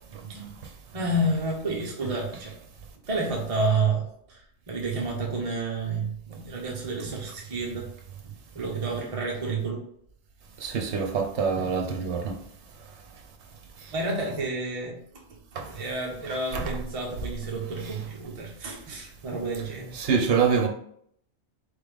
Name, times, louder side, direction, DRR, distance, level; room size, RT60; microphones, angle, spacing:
voice 1, 0.1-0.5 0.9-2.5 3.1-7.9 8.2-9.8 11.6-11.7 13.9-15.2 15.5-19.9, right 3 dB, 35° right, 0.7 m, -30 dB
voice 2, 10.6-12.4 15.6-15.7 16.5-16.7 19.9-20.7, right 6 dB, 60° right, 1.1 m, -25 dB
4.1 x 3.4 x 3.5 m
omnidirectional pair, 1.3 m